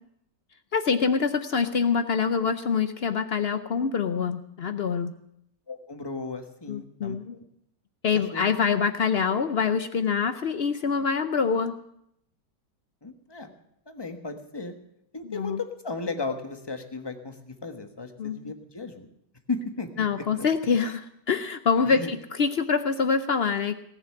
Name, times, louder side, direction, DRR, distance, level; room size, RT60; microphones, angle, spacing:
voice 1, 0.7-5.1 6.7-7.3 8.0-11.8 15.2-15.6 18.2-18.5 20.0-23.7, left 6 dB, 70° left, 10 dB, 0.5 m, -25 dB
voice 2, 5.7-7.4 8.3-8.5 13.0-13.5 13.9-14.7 15.1-19.1 19.5-20.0 20.4-20.5 21.8-22.1, left 3 dB, 15° left, 6 dB, 1.2 m, -35 dB
18.5 x 7.0 x 9.5 m, 0.76 s
omnidirectional pair, 1.9 m